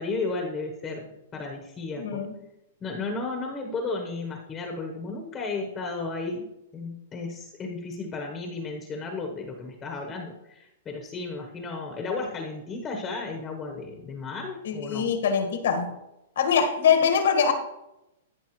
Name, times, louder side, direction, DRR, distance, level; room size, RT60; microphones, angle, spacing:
voice 1, 0.0-2.2 2.8-6.4 6.7-15.1, left 3 dB, 20° left, 2 dB, 1.1 m, -34 dB
voice 2, 2.0-2.3 14.6-15.9 16.4-17.5, left 7 dB, 75° left, 5 dB, 1.6 m, -23 dB
14.0 x 6.7 x 3.1 m, 0.90 s
hypercardioid pair, 150°, 0 cm